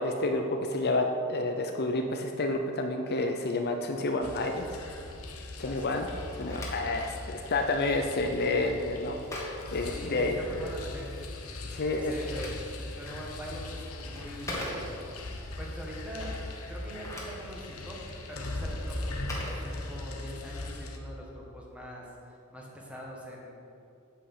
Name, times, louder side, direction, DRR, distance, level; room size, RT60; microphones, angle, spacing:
voice 1, 0.0-4.7 5.6-6.1 6.4-9.2 9.7-10.4 11.7-12.2, left 2 dB, 50° left, 4 dB, 0.6 m, -29 dB
sound 1, 4.2-21.0, left 2 dB, 80° left, 1.0 m, -40 dB
voice 2, 5.6-6.0 6.7-7.0 9.9-11.1 12.0-12.5 13.0-14.8 15.6-16.4 16.7-18.0 18.3-22.1 22.5-23.5, equal, 5° right, -3 dB, 1.6 m, -43 dB
Telephone, 6.1-10.7 11.9-15.3 16.7-20.3, left 1 dB, 15° left, 1.8 m, -43 dB
8.3 x 8.2 x 5.6 m, 2.6 s
head